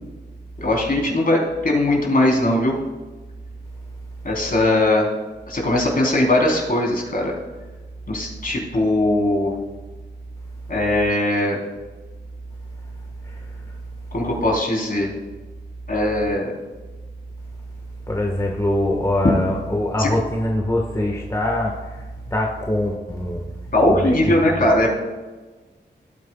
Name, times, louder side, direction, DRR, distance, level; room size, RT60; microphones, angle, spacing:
voice 1, 0.6-2.8 4.2-5.1 5.5-7.3 8.1-9.5 10.7-11.6 14.1-15.1 15.9-16.5 20.0-20.1 23.7-25.0, left 1 dB, 50° left, -2 dB, 3.8 m, -20 dB
voice 2, 12.5-14.3 17.5-23.4 23.9-24.6, left 1 dB, 20° left, 0 dB, 1.5 m, -25 dB
17.5 x 9.4 x 2.4 m, 1.3 s
cardioid pair, 70°, 18 cm